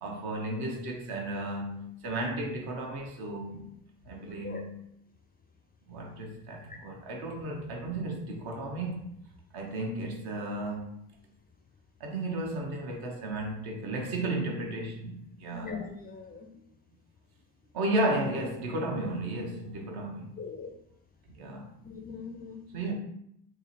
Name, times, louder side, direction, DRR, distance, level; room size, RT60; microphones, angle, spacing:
voice 1, 0.0-3.7 4.0-4.8 5.9-9.1 9.5-11.1 12.0-15.7 17.7-20.3 21.3-21.8 22.7-22.9, right 1 dB, 55° right, 0 dB, 1.1 m, -34 dB
voice 2, 4.3-4.6 6.7-6.8 15.5-16.5 20.4-20.7 21.8-22.7, left 5 dB, 20° left, 2 dB, 0.5 m, -41 dB
3.8 x 2.9 x 2.9 m, 0.74 s
figure-of-eight pair, 50°, 45 cm